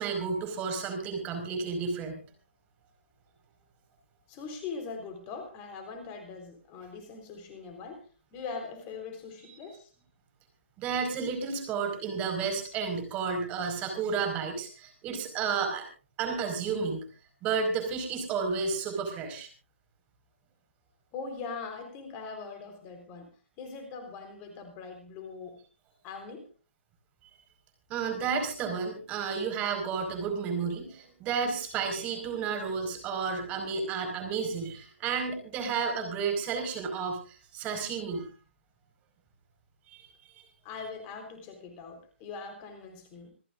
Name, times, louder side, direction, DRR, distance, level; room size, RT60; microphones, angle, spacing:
voice 1, 0.0-2.2 10.8-15.8 16.2-17.0 17.4-19.5 27.9-38.3 39.9-40.4, right 5 dB, 20° right, 5 dB, 4.9 m, -32 dB
voice 2, 4.3-8.1 8.3-9.9 21.1-23.3 23.6-25.6 26.0-26.5 40.6-43.3, left 5 dB, 25° left, 5 dB, 3.9 m, -41 dB
27.0 x 14.5 x 2.5 m, 0.36 s
figure-of-eight pair, 140°, 7 cm